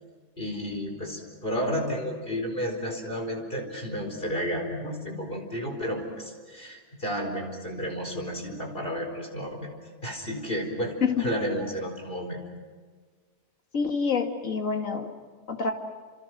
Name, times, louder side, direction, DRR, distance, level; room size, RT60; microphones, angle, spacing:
voice 1, 0.4-9.7 10.0-12.4, equal, 35° left, 2 dB, 4.7 m, -32 dB
voice 2, 13.7-15.1 15.5-15.7, left 5 dB, 50° left, 4 dB, 2.5 m, -26 dB
29.5 x 28.0 x 6.2 m, 1.5 s
omnidirectional pair, 1.7 m